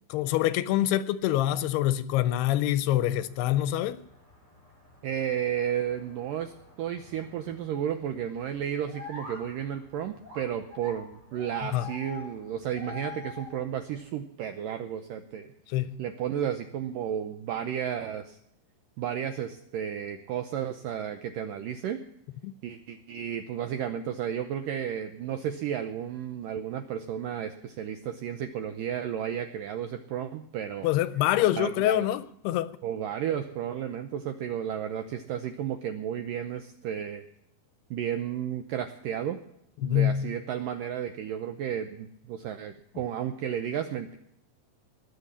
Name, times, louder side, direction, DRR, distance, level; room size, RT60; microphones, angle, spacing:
voice 1, 0.1-4.0 11.6-11.9 15.7-15.9 22.4-22.5 30.8-32.7 39.8-40.2, left 13 dB, 80° left, 2.6 m, -25 dB
sound 1, 3.2-14.0, left 3 dB, 60° right, 8.4 m, -47 dB
voice 2, 5.0-18.4 19.0-22.0 22.6-30.9 31.6-32.1 32.8-37.2 37.9-39.4 39.8-44.2, right 9 dB, 80° right, 2.0 m, -33 dB
20.5 x 7.7 x 7.1 m
omnidirectional pair, 4.9 m